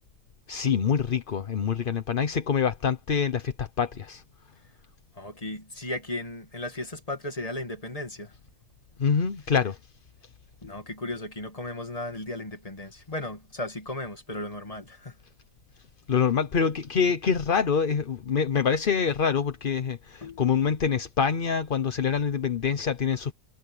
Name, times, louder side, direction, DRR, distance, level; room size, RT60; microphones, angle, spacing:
voice 1, 0.5-4.2 9.0-9.8 16.1-23.3, left 6 dB, 40° left, 0.8 m, -25 dB
voice 2, 5.2-8.3 10.6-15.1 20.2-20.5, left 1 dB, 20° left, 2.3 m, -35 dB
omnidirectional pair, 1.7 m